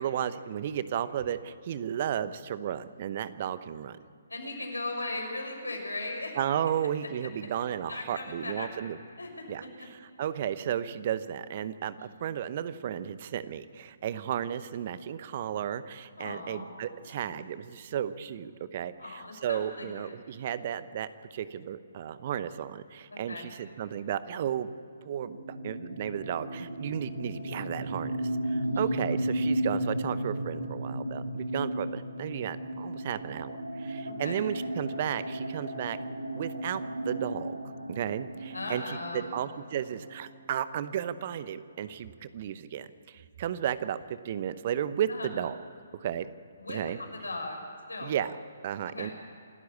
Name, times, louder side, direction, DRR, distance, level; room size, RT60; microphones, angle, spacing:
voice 1, 0.0-4.0 6.4-9.0 9.5-24.7 25.0-28.2 28.5-36.0 36.3-37.6 37.9-45.6 46.0-46.3 46.7-47.0 48.0-48.4 48.6-49.1, right 9 dB, 40° right, 14 dB, 0.9 m, -34 dB
voice 2, 4.3-6.3 7.9-8.7 9.2-9.3 9.6-9.7 12.0-12.1 16.2-16.7 17.2-17.4 19.0-20.1 23.1-23.6 28.6-28.8 34.0-34.4 38.5-39.3 45.1-45.3 46.6-47.6 47.9-48.1 48.9-49.1, left 2 dB, 80° left, 2 dB, 6.0 m, -38 dB
sound 1, 25.2-40.8, right 1 dB, 90° right, 2.4 m, -35 dB
27.5 x 13.0 x 8.4 m, 2.4 s
figure-of-eight pair, 135°, 0 cm